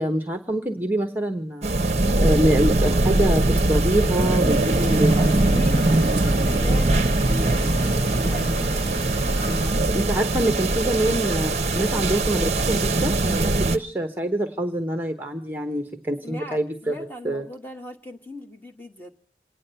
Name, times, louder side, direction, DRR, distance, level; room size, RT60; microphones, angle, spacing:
voice 1, 0.0-1.8 2.2-5.2 9.8-17.4, right 1 dB, 10° right, 5 dB, 0.9 m, -25 dB
sound 1, 1.6-13.8, right 2 dB, 35° right, 0.7 m, -21 dB
voice 2, 4.3-8.8 16.2-19.1, left 1 dB, 10° left, 2 dB, 1.3 m, -38 dB
sound 2, 4.5-9.8, equal, 55° left, 1.8 m, -35 dB
27.5 x 9.6 x 5.5 m, 0.41 s
head